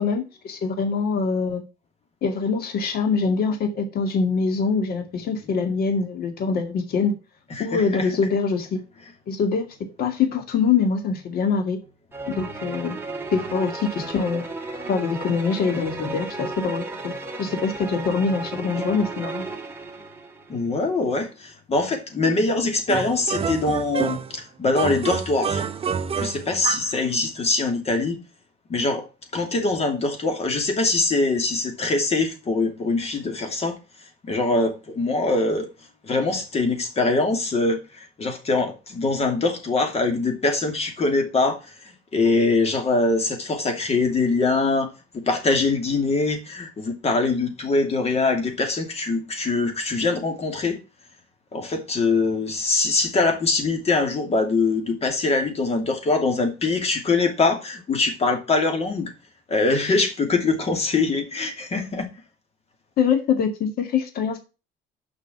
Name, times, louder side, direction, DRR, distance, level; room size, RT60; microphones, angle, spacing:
voice 1, 0.0-1.6 2.2-7.1 7.6-8.8 9.3-9.7 10.0-11.8 12.3-13.0 13.3-14.4 14.9-19.4 63.0-64.4, left 5 dB, 65° left, 2.1 m, -24 dB
voice 2, 7.5-8.1 20.5-25.6 26.2-28.2 28.7-29.1 29.3-33.8 34.3-35.7 36.0-50.8 51.5-59.1 59.5-62.1, left 3 dB, 40° left, 2.7 m, -23 dB
sound 1, 12.1-20.7, right 3 dB, 15° right, 2.2 m, -34 dB
sound 2, 22.9-24.4 24.7-27.0, right 7 dB, 35° right, 0.9 m, -28 dB
6.7 x 5.6 x 7.1 m
cardioid pair, 110°, 17 cm